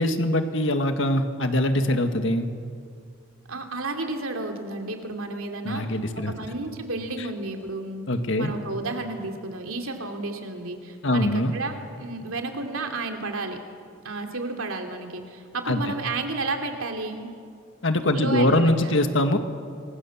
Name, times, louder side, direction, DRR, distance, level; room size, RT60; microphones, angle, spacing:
voice 1, 0.0-2.5 5.6-6.3 8.1-8.5 11.0-11.5 15.7-15.8 17.8-19.4, left 1 dB, 65° left, 7 dB, 1.9 m, -23 dB
voice 2, 3.5-6.0 6.3-8.0 8.4-13.6 14.0-17.3 18.1-19.0, right 2 dB, 85° right, 4 dB, 3.0 m, -32 dB
27.5 x 23.0 x 7.2 m, 2.3 s
head